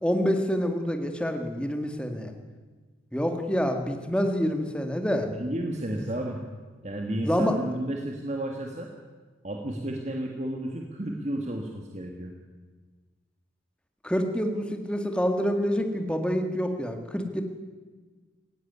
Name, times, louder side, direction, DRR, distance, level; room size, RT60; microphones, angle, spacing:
voice 1, 0.0-2.3 3.1-5.3 6.0-6.1 7.2-7.5 14.0-17.4, equal, 5° left, 5 dB, 1.8 m, -27 dB
voice 2, 5.3-6.4 6.8-8.9 9.4-12.3, right 1 dB, 35° right, 1 dB, 1.9 m, -32 dB
18.0 x 16.0 x 9.6 m, 1.4 s
head